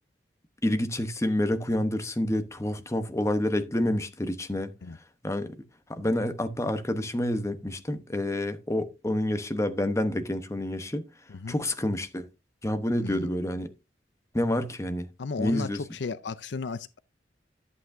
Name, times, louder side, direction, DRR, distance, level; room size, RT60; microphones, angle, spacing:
voice 1, 0.6-4.7 5.2-5.6 5.9-11.1 11.5-12.3 12.6-13.7 14.3-15.1 15.4-15.8, left 1 dB, 15° left, 1.0 m, -28 dB
voice 2, 15.2-17.0, left 4 dB, 70° left, 0.5 m, -34 dB
11.0 x 7.9 x 2.7 m
head